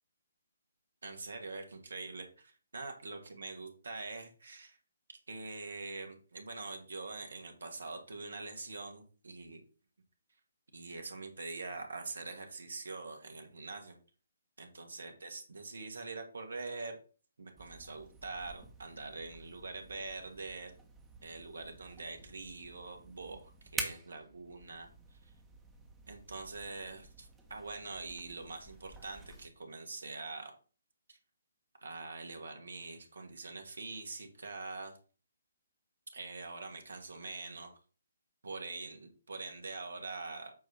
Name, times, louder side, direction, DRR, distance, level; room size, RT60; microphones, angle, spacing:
voice 1, 1.0-4.8 5.1-9.6 10.7-14.0 14.6-16.9 17.4-20.7 21.2-25.2 26.1-30.5 31.1-31.2 31.8-35.0 36.1-37.8 38.4-40.5, right 3 dB, 65° right, 4 dB, 1.8 m, -44 dB
sound 1, 17.6-29.5, right 3 dB, 10° right, 1.3 m, -49 dB
8.4 x 3.1 x 5.8 m, 0.38 s
figure-of-eight pair, 135°, 0 cm